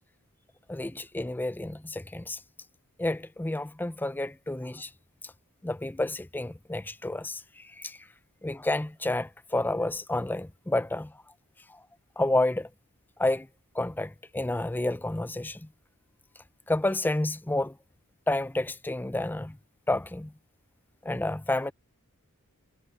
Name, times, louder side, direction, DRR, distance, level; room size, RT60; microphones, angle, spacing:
voice 1, 0.7-2.4 3.0-4.9 5.6-7.4 7.8-8.0 8.4-11.1 12.2-12.7 13.2-13.5 13.8-15.6 16.7-17.7 18.3-19.6 19.9-20.3 21.0-21.7, left 2 dB, 10° left, 0.5 m, -30 dB
head